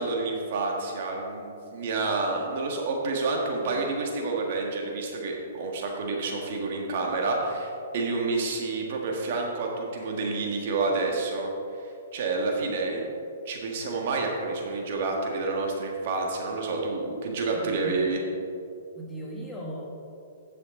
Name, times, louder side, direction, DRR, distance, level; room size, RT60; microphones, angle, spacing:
voice 1, 0.0-11.5 12.1-13.0 13.4-18.2, right 3 dB, 55° right, 0 dB, 1.7 m, -29 dB
voice 2, 3.6-3.9 17.5-18.0 19.0-19.9, right 1 dB, 10° left, -3 dB, 1.5 m, -38 dB
10.0 x 7.0 x 3.8 m, 2.5 s
hypercardioid pair, 145°, 0 cm